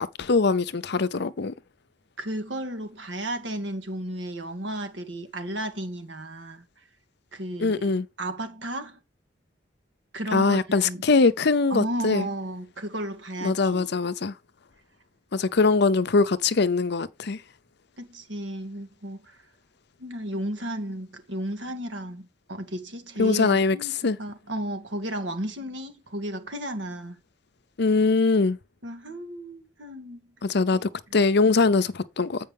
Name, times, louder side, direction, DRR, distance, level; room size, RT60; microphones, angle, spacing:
voice 1, 0.0-1.5 7.6-8.1 10.3-12.3 13.4-14.3 15.3-17.4 23.2-23.8 24.0-24.2 27.8-28.6 30.4-32.5, left 4 dB, 65° left, 0.7 m, -22 dB
voice 2, 2.2-6.6 7.3-7.9 8.2-9.0 10.1-11.0 11.7-13.9 18.0-19.4 20.0-27.2 28.8-30.3 30.7-30.8, right 1 dB, 75° right, 1.7 m, -33 dB
8.7 x 5.4 x 3.5 m
head